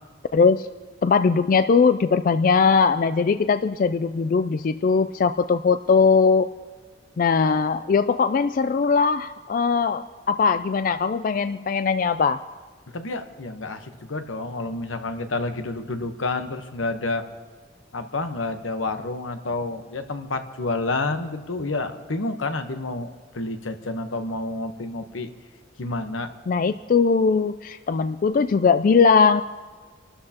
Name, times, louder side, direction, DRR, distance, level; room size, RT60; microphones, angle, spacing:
voice 1, 0.3-0.7 1.0-6.5 7.2-12.4 26.5-29.4, left 5 dB, 45° left, 11 dB, 0.3 m, -20 dB
voice 2, 12.9-17.3 17.9-25.3 25.8-26.3, left 2 dB, 85° left, 7 dB, 1.1 m, -29 dB
27.5 x 12.5 x 2.9 m, 1.4 s
head